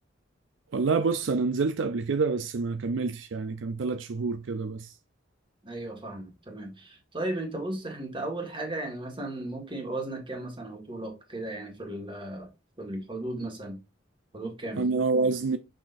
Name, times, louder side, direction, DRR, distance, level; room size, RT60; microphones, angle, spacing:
voice 1, 0.7-4.9 14.8-15.6, right 4 dB, 70° right, 0.4 m, -27 dB
voice 2, 5.6-12.5 12.8-13.8 14.3-14.8, right 1 dB, 25° right, 1.8 m, -35 dB
6.4 x 6.2 x 2.6 m
head